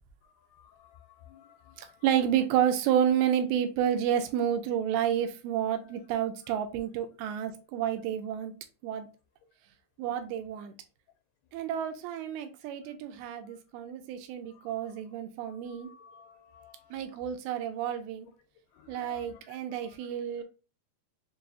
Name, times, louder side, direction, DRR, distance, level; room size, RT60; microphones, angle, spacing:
voice 1, 0.6-2.0 5.9-6.0 15.7-16.7 18.7-19.3 19.8-20.0, left 8 dB, 85° left, 2 dB, 2.6 m, -54 dB
voice 2, 1.8-8.5 8.8-9.1 10.0-10.7 11.5-15.9 16.9-18.3 18.9-20.4, right 9 dB, 80° right, 7 dB, 2.4 m, -30 dB
6.4 x 2.3 x 2.7 m, 0.33 s
omnidirectional pair, 4.7 m